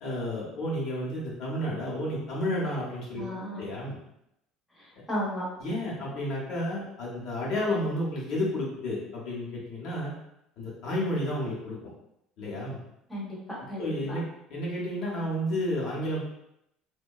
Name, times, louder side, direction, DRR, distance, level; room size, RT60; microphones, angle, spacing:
voice 1, 0.0-3.2 3.6-4.0 5.6-10.1 10.6-11.8 12.4-12.8 13.8-14.2 14.5-16.2, left 1 dB, 55° left, -4 dB, 0.8 m, -31 dB
voice 2, 3.2-3.6 4.8-5.4 13.1-14.2, equal, 5° left, -7 dB, 0.8 m, -35 dB
2.8 x 2.2 x 2.2 m, 0.80 s
cardioid pair, 155°, 0 cm